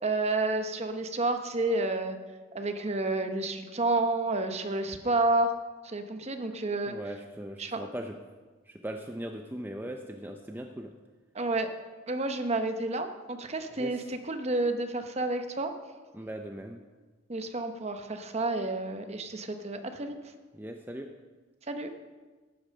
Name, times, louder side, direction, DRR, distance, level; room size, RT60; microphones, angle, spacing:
voice 1, 0.0-2.2 2.5-5.5 5.8-7.0 7.6-7.8 11.3-11.7 12.1-15.7 17.3-20.2 21.7-21.9, right 2 dB, 35° right, 7 dB, 0.9 m, -30 dB
voice 2, 6.9-8.1 8.7-10.9 13.8-13.9 16.1-16.8 20.5-21.1, right 1 dB, 10° right, 4 dB, 0.5 m, -39 dB
11.0 x 8.6 x 6.5 m, 1.3 s
head